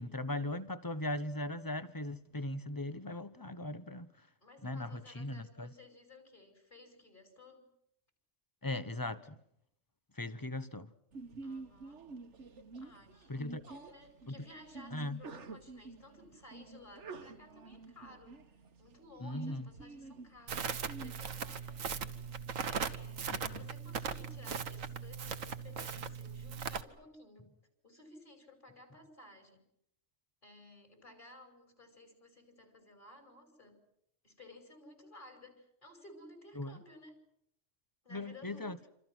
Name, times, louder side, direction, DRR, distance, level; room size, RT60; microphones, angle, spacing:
voice 1, 0.0-4.1 4.6-5.7 8.6-9.4 10.2-10.9 13.3-13.6 14.3-14.4 14.9-15.2 19.2-19.6 23.5-23.6 36.6-36.8 38.1-38.8, left 1 dB, 15° left, 1.0 m, -39 dB
voice 2, 4.4-7.7 11.4-12.1 12.8-13.3 13.7-18.4 18.8-27.6 27.8-29.6 30.4-33.9 34.2-37.2 38.0-38.8, left 2 dB, 40° left, 5.8 m, -56 dB
Sneeze, 11.1-21.1, right 3 dB, 60° right, 1.7 m, -49 dB
Crackle, 20.5-26.8, right 6 dB, 80° right, 1.6 m, -39 dB
27.0 x 27.0 x 6.2 m
omnidirectional pair, 1.3 m